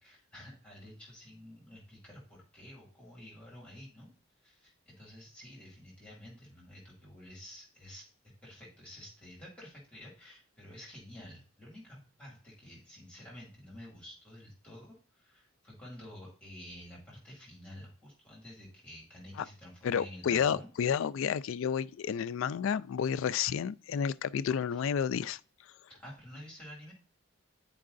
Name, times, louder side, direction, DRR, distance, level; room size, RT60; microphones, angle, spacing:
voice 1, 0.0-4.1 4.4-8.0 8.4-20.7 24.7-24.8 25.9-26.9, left 1 dB, 5° left, 2.2 m, -50 dB
voice 2, 19.8-25.4, left 7 dB, 65° left, 0.3 m, -31 dB
10.5 x 4.6 x 2.5 m
head